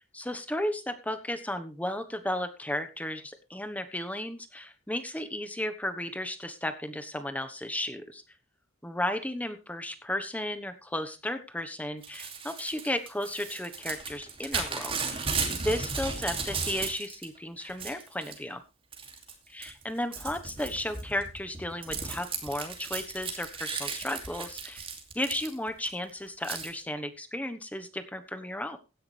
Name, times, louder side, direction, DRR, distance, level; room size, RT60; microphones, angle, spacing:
voice 1, 0.1-8.2 8.8-18.6 19.5-24.9 25.1-28.8, left 1 dB, 10° left, 9 dB, 1.2 m, -34 dB
Crumpling crinkling / Tearing, 12.0-17.3 17.6-18.4 18.9-19.3 19.6-25.9 26.4-26.7, right 4 dB, 30° right, 2.6 m, -35 dB
16.0 x 10.5 x 3.4 m, 0.30 s
head